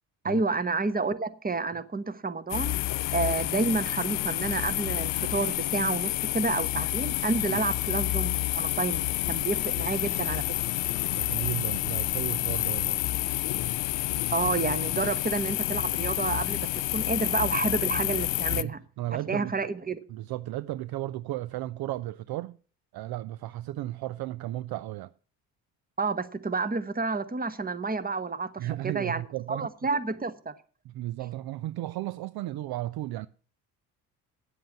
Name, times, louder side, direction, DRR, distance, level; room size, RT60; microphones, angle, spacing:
voice 1, 0.2-2.7 3.1-10.4 14.3-18.8 19.3-20.0 26.0-29.2 29.5-30.5, right 3 dB, 20° right, 1.1 m, -30 dB
sound 1, 2.5-18.6, left 18 dB, 60° left, 0.6 m, -29 dB
voice 2, 11.1-13.1 18.5-19.5 20.1-22.6 22.9-25.1 28.6-29.7 30.8-33.3, right 15 dB, 50° right, 0.5 m, -34 dB
9.6 x 7.7 x 7.2 m
hypercardioid pair, 50°, 48 cm